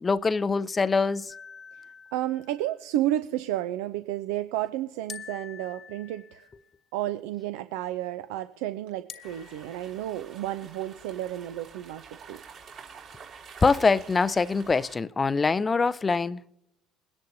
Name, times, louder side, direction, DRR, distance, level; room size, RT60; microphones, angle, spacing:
voice 1, 0.0-1.3 13.6-16.4, left 4 dB, 25° left, 0.4 m, -24 dB
sound 1, 1.3-2.8 5.1-6.8 9.1-10.2, left 7 dB, 45° left, 1.0 m, -46 dB
voice 2, 2.1-6.5 6.9-12.4, right 13 dB, 75° right, 0.5 m, -31 dB
sound 2, 9.2-15.0, right 6 dB, 55° right, 3.2 m, -48 dB
21.5 x 10.5 x 2.7 m
hypercardioid pair, 65°, 0 cm